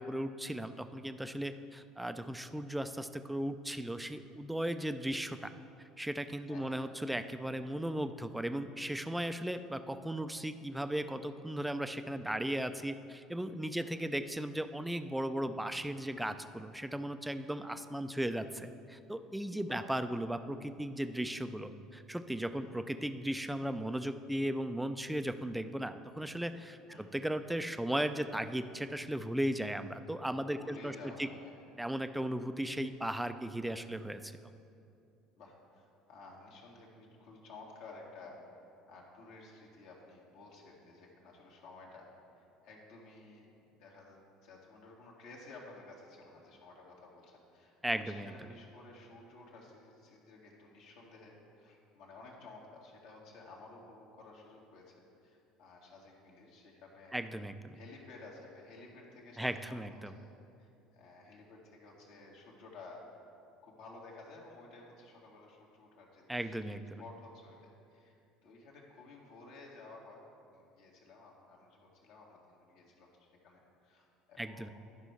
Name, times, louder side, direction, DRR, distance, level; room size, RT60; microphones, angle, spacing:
voice 1, 0.0-5.5 6.0-31.3 31.8-34.3 47.8-48.3 57.1-57.8 59.4-60.1 66.3-67.0 74.4-74.7, right 1 dB, 5° right, 10 dB, 0.5 m, -36 dB
voice 2, 6.5-6.8 13.8-14.0 19.7-19.9 22.6-22.9 26.9-27.2 30.5-31.5 35.4-43.5 43.8-57.3 57.7-60.3 60.6-63.1 63.6-66.7 67.0-74.7, left 3 dB, 65° left, -2 dB, 1.8 m, -54 dB
11.5 x 5.5 x 4.6 m, 2.6 s
hypercardioid pair, 65°, 0 cm